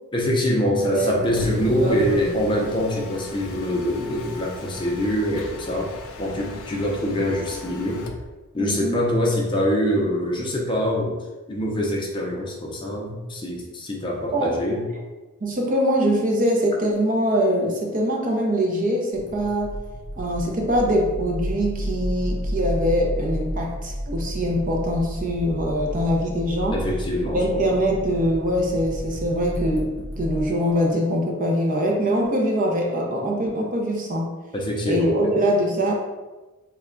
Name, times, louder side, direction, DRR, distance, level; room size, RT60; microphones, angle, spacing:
voice 1, 0.1-5.9 6.2-8.0 8.5-11.2 11.5-14.8 26.7-27.6 34.5-35.3, equal, 20° left, -2 dB, 0.5 m, -24 dB
voice 2, 0.9-1.4 1.6-2.3 2.5-2.7 8.6-9.0 14.3-14.6 15.4-19.8 20.2-26.8 27.3-34.3 34.9-35.9, equal, 40° right, 0 dB, 0.5 m, -23 dB
Mechanisms, 1.0-8.3, left 3 dB, 75° left, 0.4 m, -39 dB
sound 1, 19.1-30.4, equal, 60° right, 1.3 m, -31 dB
3.4 x 2.2 x 3.6 m, 1.2 s
head